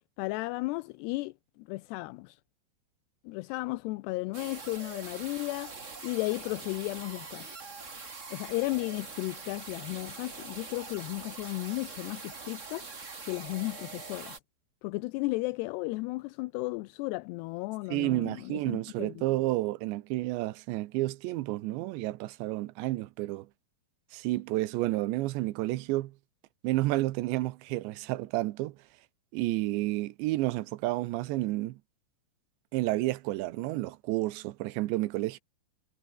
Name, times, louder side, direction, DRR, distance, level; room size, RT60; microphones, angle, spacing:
voice 1, 0.2-2.4 3.2-7.8 8.3-12.9 13.3-14.4 14.8-19.2, left 22 dB, 80° left, 2.6 m, -34 dB
sound 1, 4.3-14.4, right 4 dB, 30° right, 1.5 m, -44 dB
voice 2, 17.9-23.5 24.1-26.1 26.6-28.8 29.3-31.8 32.7-35.4, right 18 dB, 85° right, 3.1 m, -30 dB
omnidirectional pair, 5.1 m